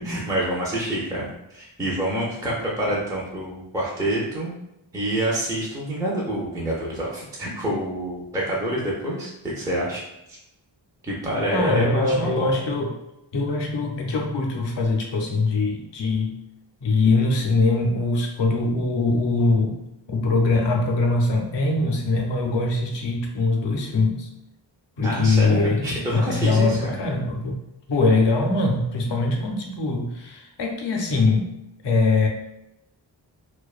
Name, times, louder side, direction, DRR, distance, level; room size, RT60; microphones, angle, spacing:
voice 1, 0.0-4.5 4.9-10.0 10.3-10.4 11.0-12.5 25.0-27.0, right 1 dB, 10° right, -5 dB, 0.4 m, -27 dB
voice 2, 11.5-13.0 13.3-16.3 16.8-19.8 20.1-24.3 25.0-27.6 27.9-31.5 31.8-32.3, left 3 dB, 70° left, 1 dB, 0.6 m, -22 dB
2.5 x 2.2 x 2.3 m, 0.85 s
wide cardioid pair, 85°, 46 cm